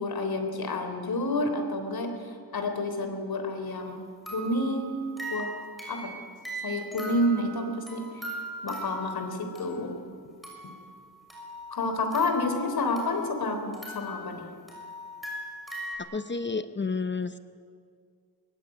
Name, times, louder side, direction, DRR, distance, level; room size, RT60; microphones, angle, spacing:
voice 1, 0.0-4.0 4.3-4.9 5.3-5.5 5.9-6.2 6.6-8.3 8.6-10.0 11.7-14.5, left 2 dB, 65° left, 6 dB, 3.7 m, -29 dB
Creepy Antique German Music Box, 3.7-3.8 4.3-10.1 10.4-10.8 11.3-13.4 13.7-15.9, right 1 dB, ahead, 6.8 m, -40 dB
voice 2, 16.0-17.4, left 4 dB, 30° left, 11 dB, 0.8 m, -31 dB
23.0 x 22.0 x 9.2 m, 2.1 s
wide cardioid pair, 160°, 39 cm